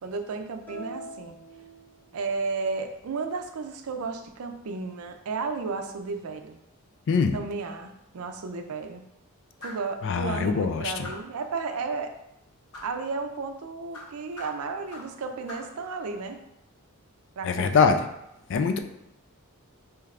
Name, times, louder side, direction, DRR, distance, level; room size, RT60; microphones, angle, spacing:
voice 1, 0.0-1.4 2.1-6.6 7.3-9.0 9.6-12.1 12.8-16.4 17.4-18.0, right 4 dB, 75° right, 6 dB, 0.4 m, -33 dB
sound 1, 0.7-2.5, right 1 dB, 10° left, 0.7 m, -44 dB
voice 2, 7.1-7.4 10.0-11.1 17.4-18.0 18.5-18.8, left 5 dB, 55° left, 8 dB, 0.3 m, -23 dB
sound 2, 9.6-9.9 11.0-11.4 12.7-13.0 13.9-15.2 15.5-15.8, left 1 dB, 90° left, 0.9 m, -42 dB
4.5 x 3.2 x 2.4 m, 0.83 s
head